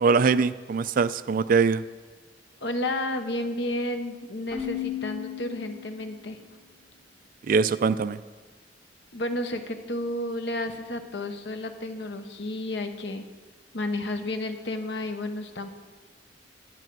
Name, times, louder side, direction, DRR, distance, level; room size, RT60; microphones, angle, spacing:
voice 1, 0.0-1.8 7.5-8.2, right 5 dB, 50° right, 15 dB, 0.3 m, -22 dB
voice 2, 2.6-6.4 9.1-13.2 13.7-15.7, left 1 dB, 70° left, 7 dB, 0.9 m, -31 dB
Keyboard (musical), 4.5-6.3, left 11 dB, 40° left, 1.6 m, -35 dB
10.5 x 10.5 x 4.6 m, 1.4 s
head